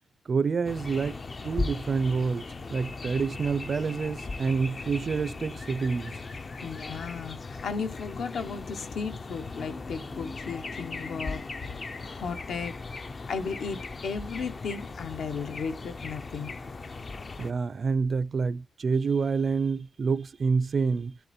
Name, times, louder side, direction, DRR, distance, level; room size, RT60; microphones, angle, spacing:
voice 1, 0.3-2.4 2.7-6.2 17.4-21.1, right 5 dB, 35° right, 0.5 m, -27 dB
sound 1, 0.6-17.5, left 3 dB, 30° left, 0.5 m, -38 dB
voice 2, 6.6-11.4 12.0-12.7 13.3-16.6, left 5 dB, 65° left, 1.1 m, -35 dB
11.0 x 3.7 x 4.3 m
wide cardioid pair, 175°, 0 cm